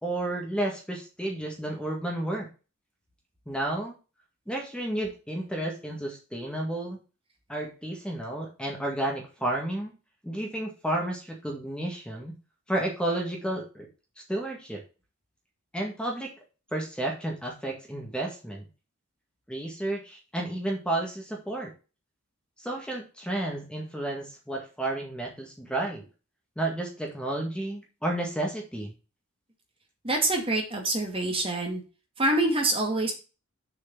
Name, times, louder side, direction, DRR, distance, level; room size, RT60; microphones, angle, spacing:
voice 1, 0.0-2.5 3.5-4.0 4.5-7.0 7.5-9.9 10.2-12.3 12.7-13.9 14.3-14.8 15.7-16.3 16.7-18.7 19.5-21.7 22.6-26.1 26.6-28.9, right 1 dB, 5° left, 0 dB, 1.8 m, -31 dB
voice 2, 30.0-31.8 32.2-33.1, right 2 dB, 25° right, 1 dB, 2.0 m, -26 dB
6.9 x 4.8 x 6.1 m, 0.32 s
head